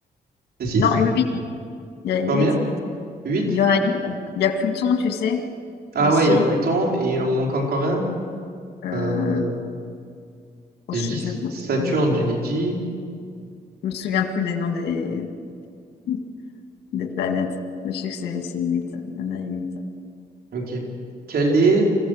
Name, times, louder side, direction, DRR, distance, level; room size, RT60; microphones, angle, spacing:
voice 1, 0.8-1.2 2.0-2.5 3.4-5.4 6.0-6.5 8.8-9.4 10.9-11.4 11.8-12.2 13.8-15.3 16.1-16.2 16.9-17.5 17.8-19.7, left 6 dB, 90° left, 4 dB, 2.0 m, -24 dB
voice 2, 3.2-3.6 5.9-8.1 8.9-9.6 10.9-12.8 20.5-20.8 21.3-21.9, right 2 dB, 65° right, -1 dB, 4.7 m, -21 dB
25.5 x 15.5 x 6.6 m, 2.2 s
cardioid pair, 75°, 17 cm